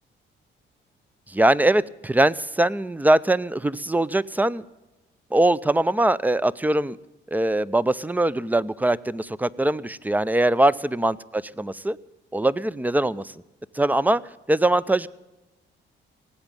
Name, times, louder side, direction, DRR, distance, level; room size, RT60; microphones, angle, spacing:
voice 1, 1.3-4.6 5.3-7.0 7.3-12.0 12.3-13.3 13.7-14.2 14.5-15.1, right 1 dB, 10° right, 19 dB, 0.5 m, -22 dB
18.5 x 8.3 x 8.9 m, 1.0 s
cardioid pair, 90°, 20 cm